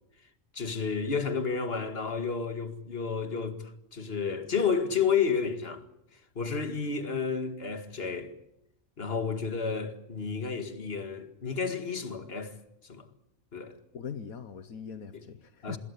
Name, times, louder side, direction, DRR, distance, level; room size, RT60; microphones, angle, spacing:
voice 1, 0.5-5.8 6.1-8.3 9.0-12.6 12.8-13.1 13.5-13.8 15.6-15.8, left 5 dB, 45° left, 2.3 m, -31 dB
voice 2, 13.9-15.8, left 6 dB, 75° left, 1.6 m, -41 dB
26.0 x 22.0 x 8.4 m
omnidirectional pair, 1.5 m